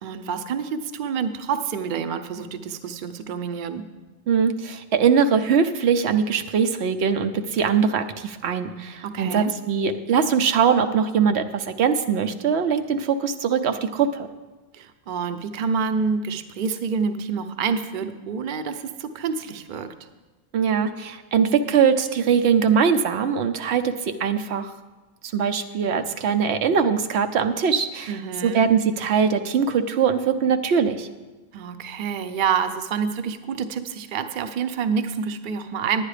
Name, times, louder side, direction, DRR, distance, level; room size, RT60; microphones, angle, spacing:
voice 1, 0.0-3.8 9.0-9.5 14.7-19.9 28.1-28.7 31.5-36.1, right 6 dB, 55° right, 10 dB, 0.7 m, -27 dB
voice 2, 4.3-14.3 20.5-24.7 25.2-31.1, right 6 dB, 90° right, 8 dB, 1.0 m, -22 dB
10.0 x 9.9 x 4.9 m, 1.2 s
omnidirectional pair, 1.1 m